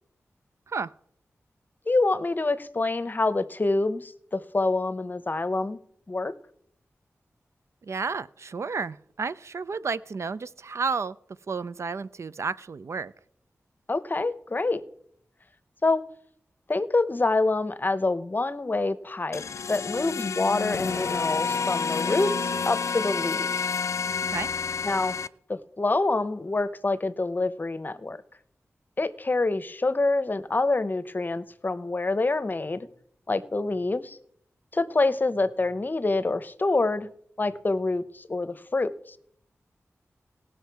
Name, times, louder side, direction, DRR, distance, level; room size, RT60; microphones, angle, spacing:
voice 1, 1.9-5.8 6.1-6.3 13.9-14.8 15.8-16.0 16.7-19.4 19.7-23.5 24.8-25.2 25.5-28.2 29.0-32.9 33.3-34.2 34.7-37.1 37.4-39.2, left 3 dB, 35° left, 0.7 m, -26 dB
voice 2, 7.8-11.2 11.5-13.1 24.2-24.5, right 4 dB, 65° right, 0.4 m, -31 dB
sound 1, 19.3-25.3, left 5 dB, 75° left, 0.3 m, -29 dB
18.5 x 6.4 x 4.6 m
wide cardioid pair, 75°, 5 cm